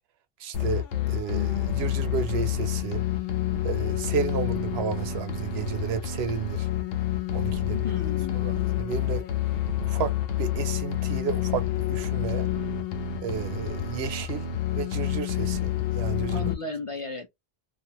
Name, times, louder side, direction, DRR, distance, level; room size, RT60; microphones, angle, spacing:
voice 1, 0.4-3.0 3.6-6.7 7.3-7.8 8.4-9.2 9.8-10.1 10.4-12.5 13.2-15.7 16.0-16.5, right 7 dB, 85° right, 0.8 m, -32 dB
sound 1, 0.5-16.5, left 11 dB, 70° left, 0.8 m, -28 dB
voice 2, 7.7-8.4 16.3-17.3, left 4 dB, 40° left, 0.6 m, -34 dB
2.4 x 2.1 x 2.8 m
omnidirectional pair, 1.0 m